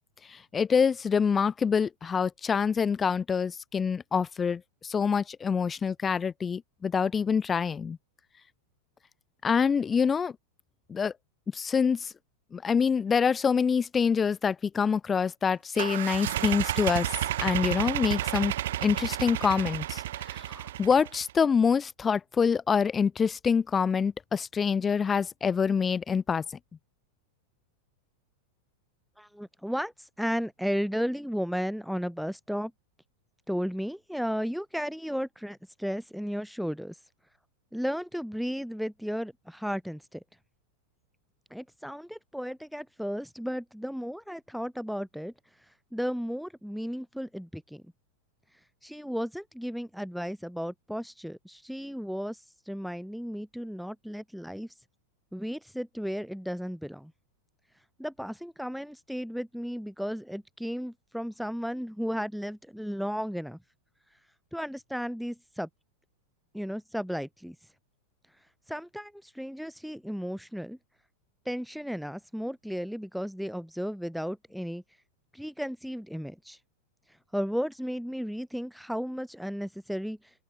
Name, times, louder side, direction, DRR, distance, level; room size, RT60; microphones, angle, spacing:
voice 1, 0.3-8.0 9.4-10.3 10.9-11.1 11.5-12.1 12.5-18.5 18.8-26.4, left 6 dB, 20° left, 0.8 m, -26 dB
sound 1, 15.8-21.3, right 13 dB, 55° right, 1.3 m, -31 dB
voice 2, 29.2-32.7 33.5-37.0 37.7-40.2 41.5-45.3 45.9-47.8 48.8-52.4 52.7-54.7 55.3-57.1 58.0-63.6 64.5-65.7 66.5-67.6 68.7-70.8 71.5-74.8 75.3-76.6 77.3-80.2, equal, ahead, 3.9 m, -34 dB
figure-of-eight pair, 90°, 0 cm